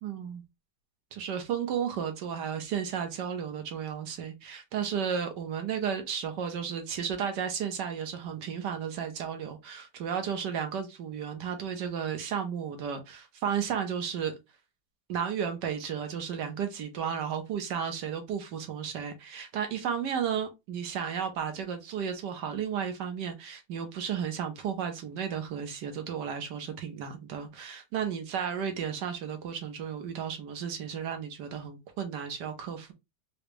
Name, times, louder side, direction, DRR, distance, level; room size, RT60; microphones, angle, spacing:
voice 1, 0.0-0.4 1.1-14.3 15.1-32.9, right 7 dB, 80° right, 1.4 m, -33 dB
4.8 x 2.0 x 3.2 m
omnidirectional pair, 1.9 m